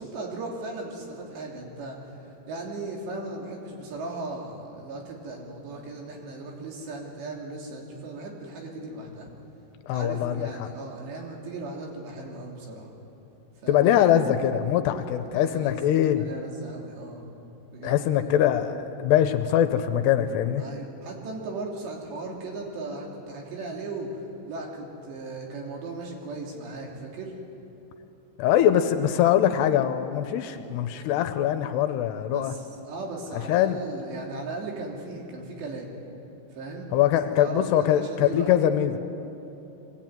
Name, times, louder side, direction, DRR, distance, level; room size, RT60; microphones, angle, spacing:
voice 1, 0.0-9.3 9.9-12.9 13.6-13.9 15.2-17.2 17.7-18.4 20.6-27.3 32.3-35.9 36.5-36.9 37.4-38.5, right 2 dB, 75° right, -1 dB, 4.9 m, -37 dB
voice 2, 9.9-10.7 13.7-16.3 17.8-20.7 28.4-32.5 33.5-33.8 36.9-39.0, left 10 dB, 80° left, 8 dB, 2.7 m, -23 dB
23.0 x 17.0 x 9.1 m, 2.9 s
omnidirectional pair, 5.1 m